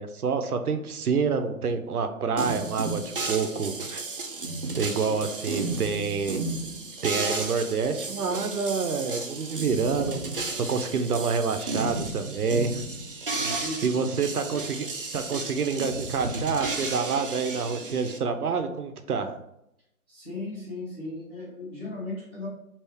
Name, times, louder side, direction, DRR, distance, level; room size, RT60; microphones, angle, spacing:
voice 1, 0.0-4.0 4.8-6.4 7.0-10.2 10.6-12.7 13.8-14.9 15.1-19.3, right 5 dB, 80° right, 7 dB, 0.6 m, -27 dB
sound 1, 2.4-18.2, right 3 dB, 40° right, 0.4 m, -33 dB
voice 2, 13.4-14.0 20.1-22.5, left 2 dB, ahead, -16 dB, 0.8 m, -36 dB
3.5 x 2.5 x 3.3 m, 0.80 s
figure-of-eight pair, 145°, 44 cm